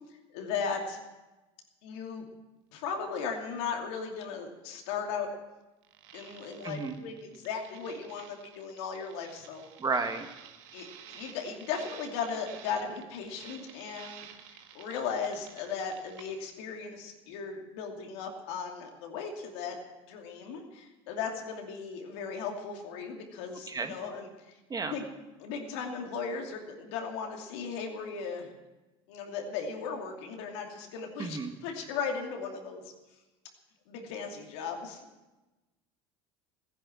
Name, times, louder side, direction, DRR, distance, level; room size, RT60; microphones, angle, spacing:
voice 1, 0.3-1.0 1.8-2.2 2.7-5.3 6.1-9.7 10.7-19.8 20.1-24.5 24.8-25.1 25.4-28.5 29.1-32.8 33.9-35.0, left 6 dB, 80° left, 2 dB, 2.7 m, -37 dB
sound 1, 5.8-16.3, right 10 dB, 80° right, 1.4 m, -52 dB
voice 2, 6.6-7.0 9.8-10.3 23.7-24.0 24.7-25.0 31.2-31.5, right 4 dB, 25° right, 7 dB, 1.5 m, -32 dB
15.0 x 10.5 x 7.5 m, 1.1 s
supercardioid pair, 95°, 14 cm